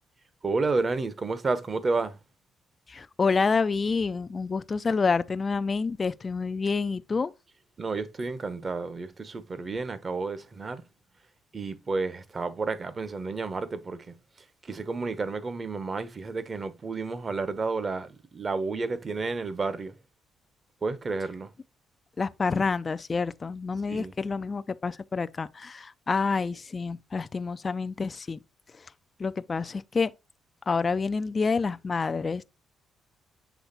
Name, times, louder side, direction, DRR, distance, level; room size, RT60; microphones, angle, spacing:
voice 1, 0.4-2.2 7.8-10.8 11.5-14.2 14.6-19.9 20.8-21.5 23.9-24.1, right 3 dB, 35° right, 0.9 m, -31 dB
voice 2, 2.9-7.3 22.2-28.4 28.7-28.9 29.2-30.1 30.7-32.4, left 4 dB, 35° left, 0.3 m, -28 dB
7.1 x 3.4 x 4.0 m
cardioid pair, 90°, 0 cm